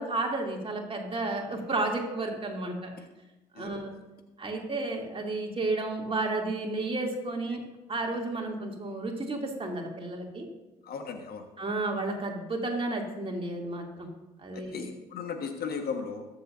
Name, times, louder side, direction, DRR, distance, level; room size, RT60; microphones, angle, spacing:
voice 1, 0.0-2.9 3.5-3.9 4.4-7.6 7.9-10.5 11.6-14.1 14.4-14.9, right 2 dB, 25° right, 0 dB, 2.8 m, -32 dB
voice 2, 10.8-11.4 14.5-16.3, left 5 dB, 50° left, 5 dB, 1.5 m, -36 dB
21.5 x 7.5 x 2.7 m, 1.1 s
hypercardioid pair, 55°, 20 cm